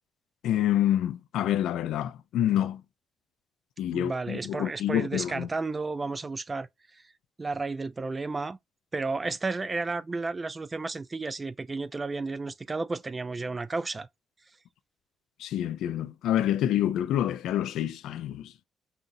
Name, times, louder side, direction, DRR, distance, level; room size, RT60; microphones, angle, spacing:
voice 1, 0.4-2.8 3.8-5.5 15.4-18.5, left 11 dB, 85° left, 0.5 m, -27 dB
voice 2, 3.9-7.0 7.4-8.6 8.9-14.1, right 3 dB, 25° right, 0.5 m, -32 dB
5.6 x 2.5 x 2.7 m
cardioid pair, 90°, 0 cm